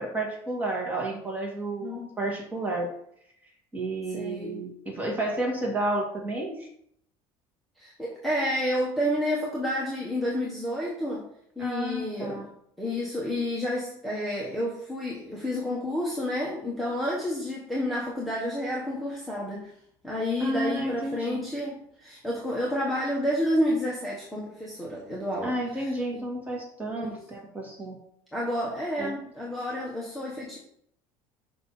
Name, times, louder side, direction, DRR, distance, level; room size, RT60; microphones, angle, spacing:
voice 1, 0.0-2.9 3.7-6.7 11.6-12.5 20.4-21.4 25.4-28.0 29.0-29.1, right 2 dB, 15° right, -2 dB, 2.2 m, -31 dB
voice 2, 1.8-2.1 4.1-4.6 7.8-11.3 11.6-12.5 12.8-19.7 20.0-26.2 27.0-27.2 28.3-30.6, left 1 dB, ahead, -5 dB, 1.3 m, -30 dB
6.0 x 5.8 x 4.2 m, 0.69 s
cardioid pair, 150°, 11 cm